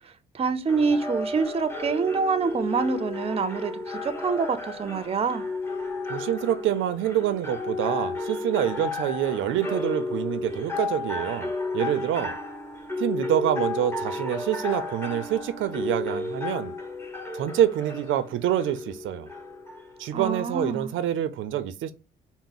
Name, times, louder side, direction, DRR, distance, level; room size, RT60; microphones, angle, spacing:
voice 1, 0.3-5.4 20.1-20.9, right 4 dB, 30° right, 0.5 m, -26 dB
sound 1, 0.7-20.3, left 2 dB, 10° left, 0.9 m, -33 dB
voice 2, 6.1-12.3 13.0-16.7 17.3-19.3 20.0-21.9, right 11 dB, 80° right, 0.5 m, -26 dB
4.6 x 2.0 x 3.9 m
cardioid pair, 90°, 20 cm